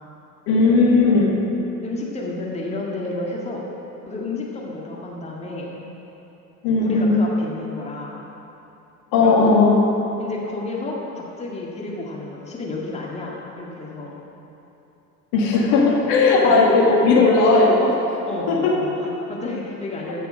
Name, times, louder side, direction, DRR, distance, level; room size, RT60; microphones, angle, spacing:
voice 1, 0.5-1.4 6.6-7.2 9.1-9.8 15.3-18.2 18.5-18.7, left 3 dB, 50° left, -2 dB, 2.1 m, -16 dB
voice 2, 1.8-3.6 4.1-5.7 6.8-8.2 9.2-9.5 10.2-14.2 18.3-20.3, left 2 dB, 15° left, -4 dB, 1.9 m, -31 dB
15.0 x 6.8 x 5.1 m, 2.9 s
figure-of-eight pair, 75°, 50 cm